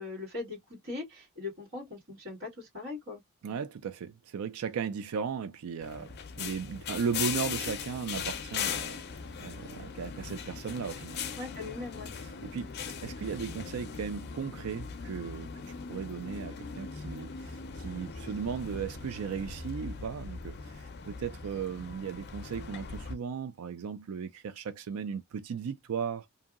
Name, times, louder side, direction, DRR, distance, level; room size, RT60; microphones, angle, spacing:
voice 1, 0.0-3.2 11.4-12.1, left 3 dB, 55° right, 2.0 m, -40 dB
voice 2, 3.4-9.0 9.4-11.2 11.6-11.7 12.2-12.7 13.0-26.3, right 6 dB, 80° right, 0.4 m, -36 dB
sound 1, 5.8-23.1, left 6 dB, 50° left, 0.5 m, -39 dB
2.7 x 2.7 x 2.4 m
head